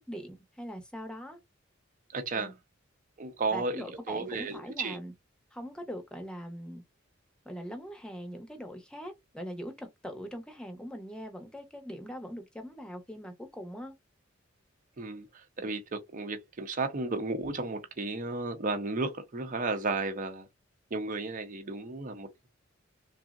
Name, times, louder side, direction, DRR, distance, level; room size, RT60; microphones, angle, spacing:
voice 1, 0.1-1.4 2.3-2.5 3.5-5.1 5.5-6.8 7.4-13.9 15.6-15.7, equal, 5° left, 0.7 m, -42 dB
voice 2, 2.1-2.5 3.2-5.0 15.0-20.5 20.9-22.5, right 3 dB, 40° right, 0.6 m, -34 dB
3.5 x 2.0 x 2.4 m
head